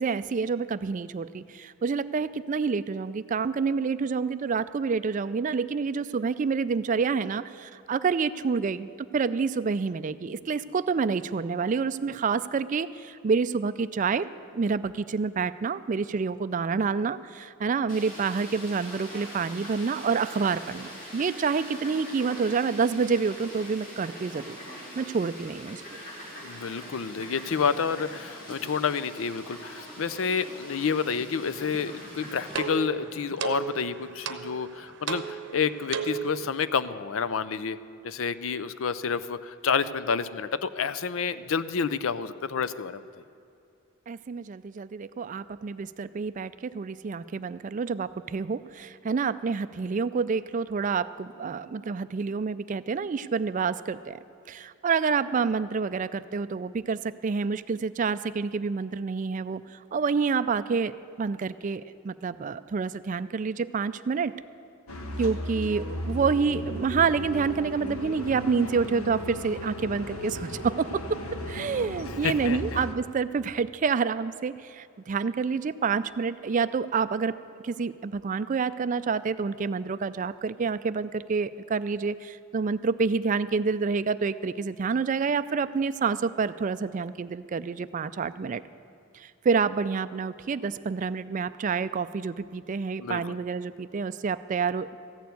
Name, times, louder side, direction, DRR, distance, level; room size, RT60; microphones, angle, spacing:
voice 1, 0.0-14.3 14.5-24.6 25.0-25.8 44.1-54.2 54.5-60.9 61.2-64.3 65.2-71.2 71.5-77.3 77.6-88.6 89.1-95.0, right 5 dB, 40° right, 14 dB, 0.3 m, -28 dB
Fowl, 17.9-32.6, equal, 40° left, 3.3 m, -43 dB
voice 2, 26.4-37.8 38.0-43.0 72.2-72.8 93.0-93.4, left 6 dB, 75° left, 14 dB, 0.5 m, -29 dB
sound 1, 31.9-36.5, right 7 dB, 60° right, 0.8 m, -35 dB
sound 2, 64.9-72.9, equal, 90° left, 1.3 m, -36 dB
14.5 x 6.9 x 9.3 m, 2.5 s
head